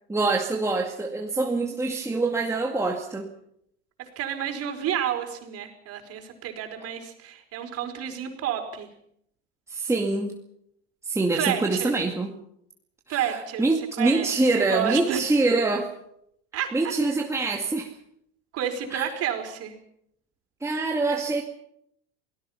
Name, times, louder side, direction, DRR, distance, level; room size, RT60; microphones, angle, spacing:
voice 1, 0.1-3.3 9.7-10.3 11.1-12.3 13.1-15.9 16.7-17.9 18.9-19.1 20.6-21.4, right 3 dB, 10° right, 0 dB, 2.2 m, -25 dB
voice 2, 4.0-8.9 11.3-11.9 13.1-14.3 14.6-15.2 16.5-16.9 18.5-19.7, right 9 dB, 50° right, 5 dB, 4.9 m, -30 dB
28.0 x 18.0 x 5.8 m, 0.73 s
supercardioid pair, 105°, 31 cm